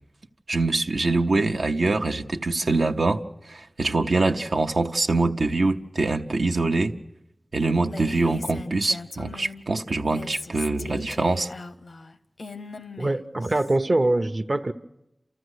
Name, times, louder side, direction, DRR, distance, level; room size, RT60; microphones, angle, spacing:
voice 1, 0.5-3.2 3.5-7.0 7.5-11.5, right 3 dB, 85° right, 4 dB, 0.8 m, -24 dB
Female speech woman speaking, 7.8-9.6 10.0-13.8, left 3 dB, 80° left, 0.7 m, -39 dB
voice 2, 13.0-14.7, right 2 dB, 50° right, 7 dB, 0.7 m, -23 dB
29.0 x 14.0 x 8.0 m, 0.91 s
wide cardioid pair, 45°, 0 cm